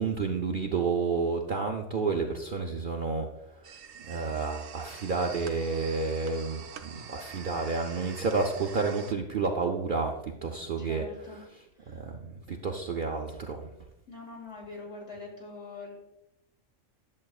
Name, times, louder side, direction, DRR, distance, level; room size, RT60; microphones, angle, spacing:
voice 1, 0.0-11.1 11.3-11.4 11.9-13.7, right 4 dB, 55° right, 2 dB, 0.6 m, -30 dB
sound 1, 3.6-9.1, right 7 dB, 75° right, 1.0 m, -45 dB
voice 2, 10.8-11.4 11.7-12.0 14.1-16.0, left 3 dB, 60° left, -3 dB, 3.0 m, -43 dB
10.5 x 7.4 x 2.4 m, 0.86 s
omnidirectional pair, 1.4 m